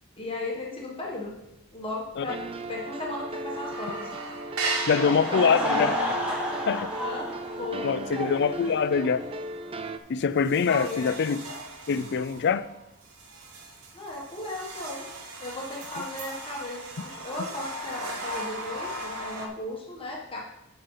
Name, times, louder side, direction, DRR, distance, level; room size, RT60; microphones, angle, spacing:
voice 1, 0.2-1.3 1.7-2.4 2.7-4.1 4.9-5.1 5.3-5.9 6.3-6.4 7.0-7.9 10.7-11.1 13.9-15.0 15.4-20.4, left 2 dB, 25° left, -3 dB, 1.5 m, -36 dB
sound 1, 1.3-1.8 2.0-2.1 2.5-3.1 3.4-8.6 9.0-9.3 9.8-9.9 10.3-19.5, right 2 dB, 90° right, 1.2 m, -37 dB
sound 2, 2.3-10.0, right 2 dB, 25° right, 0.5 m, -37 dB
voice 2, 4.9-6.0 6.7-6.9 7.8-9.2 10.1-11.4 11.9-12.7, left 6 dB, 55° left, 15 dB, 0.4 m, -24 dB
Laughter / Crowd, 4.9-9.4, left 1 dB, 5° right, 2.0 m, -31 dB
9.7 x 6.4 x 4.0 m, 0.88 s
head